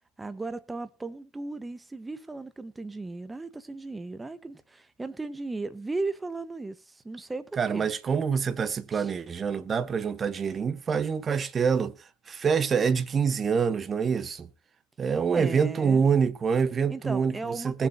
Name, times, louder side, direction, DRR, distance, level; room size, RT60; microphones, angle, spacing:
voice 1, 0.2-7.9 8.9-9.1 15.3-16.1 16.9-17.9, right 3 dB, 15° right, 1.3 m, -36 dB
voice 2, 7.6-11.9 12.3-14.5 15.0-17.9, right 6 dB, 30° right, 1.3 m, -26 dB
20.0 x 7.4 x 2.8 m
hypercardioid pair, 80°, 0 cm